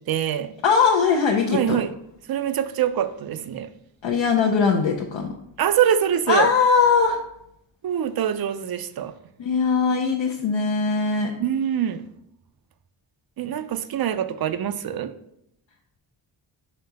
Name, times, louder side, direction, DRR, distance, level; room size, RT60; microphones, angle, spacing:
voice 1, 0.0-0.5 1.5-1.9 2.3-3.7 5.6-6.5 7.8-9.1 11.4-12.0 13.4-15.1, right 9 dB, 50° right, 12 dB, 0.5 m, -24 dB
voice 2, 0.6-1.8 4.0-5.3 6.3-7.2 9.4-11.3, left 5 dB, 70° left, 1 dB, 0.8 m, -20 dB
4.6 x 4.3 x 5.3 m, 0.77 s
cardioid pair, 105°, 48 cm